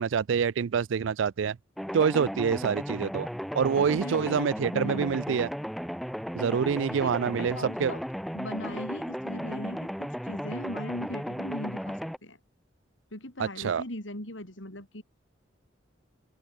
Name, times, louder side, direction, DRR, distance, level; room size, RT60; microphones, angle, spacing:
voice 1, 0.0-1.6 1.9-3.3 3.5-5.5 6.3-7.9 13.4-13.8, right 6 dB, 80° right, 0.4 m, -26 dB
sound 1, 1.8-12.2, equal, ahead, 0.7 m, -35 dB
voice 2, 3.9-4.4 4.7-5.2 6.9-8.0 8.3-12.4 13.1-15.0, left 1 dB, 75° left, 5.6 m, -39 dB
open air
head